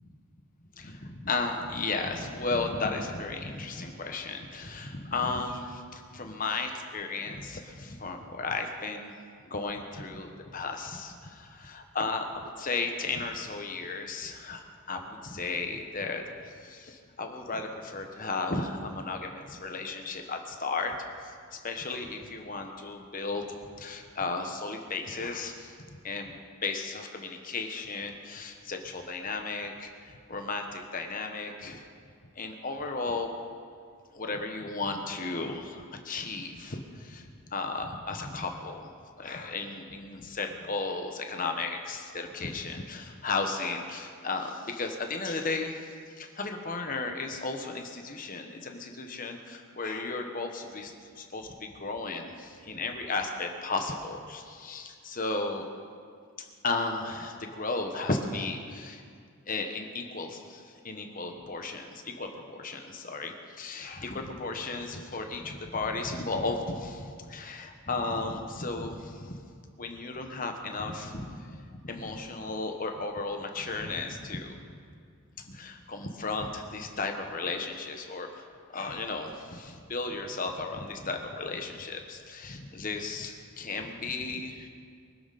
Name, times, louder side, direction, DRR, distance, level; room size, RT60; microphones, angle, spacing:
voice 1, 0.8-9.2 9.5-14.6 14.9-21.0 21.2-23.4 23.8-29.9 30.3-31.9 32.4-33.3 34.1-38.9 39.2-55.6 56.4-59.0 59.5-69.4 69.8-74.6 75.4-78.4 78.7-84.7, left 3 dB, 40° left, 4 dB, 1.3 m, -34 dB
24.0 x 12.0 x 4.2 m, 2.2 s
head